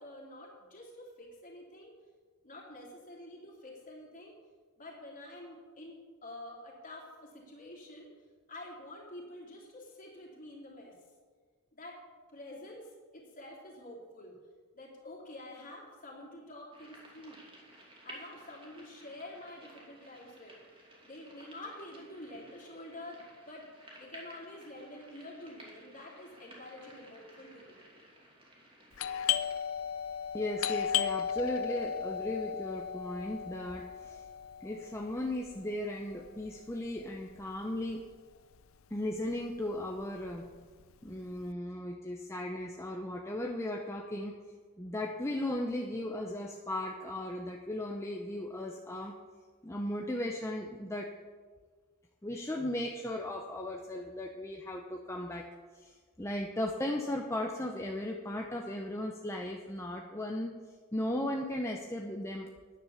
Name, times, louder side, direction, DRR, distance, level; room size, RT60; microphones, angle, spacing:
voice 1, 0.0-1.9 2.4-4.4 4.8-8.1 8.5-11.0 11.7-12.0 12.3-14.3 14.7-17.4 18.0-20.6 21.0-23.7 24.0-27.7, left 1 dB, 35° left, -2 dB, 3.1 m, -48 dB
sound 1, 16.7-29.6, right 1 dB, 25° right, 2.9 m, -55 dB
Doorbell, 28.9-38.3 38.6-38.7 39.3-39.7 40.0-41.4, left 9 dB, 60° left, 0.5 m, -36 dB
voice 2, 30.3-34.2 34.6-38.0 38.9-40.5 41.0-44.4 44.8-49.2 49.6-51.1 52.2-55.5 55.7-60.6 60.9-62.5, left 1 dB, 10° left, 1 dB, 0.7 m, -36 dB
10.0 x 9.8 x 7.1 m, 1.5 s
head